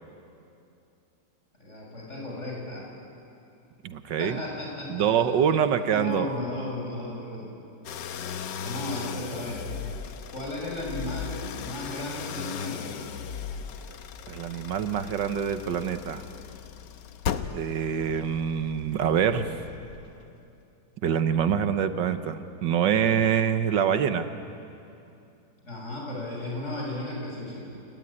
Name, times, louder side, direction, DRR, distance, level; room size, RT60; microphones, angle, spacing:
voice 1, 1.6-2.9 4.2-5.1 5.9-7.5 8.6-9.9 10.3-13.1 25.6-27.8, left 1 dB, 40° left, -2 dB, 7.0 m, -35 dB
voice 2, 3.8-4.4 4.9-6.3 14.3-16.2 17.5-19.6 21.0-24.3, right 8 dB, 85° right, 10 dB, 1.8 m, -25 dB
sound 1, 7.8-20.2, left 7 dB, 75° left, 1.6 m, -37 dB
29.5 x 19.0 x 9.8 m, 2.7 s
omnidirectional pair, 1.9 m